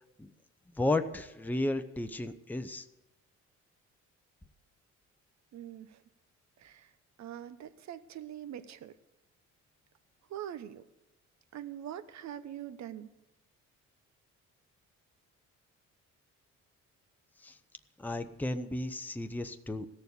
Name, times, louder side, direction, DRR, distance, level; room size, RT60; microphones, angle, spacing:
voice 1, 0.8-2.8 17.4-17.6 18.0-19.9, left 2 dB, 5° left, 8 dB, 0.7 m, -33 dB
voice 2, 5.5-6.0 6.6-6.9 7.2-9.0 10.3-10.9 11.5-13.1, right 10 dB, 65° right, 12 dB, 0.9 m, -43 dB
16.0 x 6.9 x 8.2 m, 1.0 s
cardioid pair, 90°, 30 cm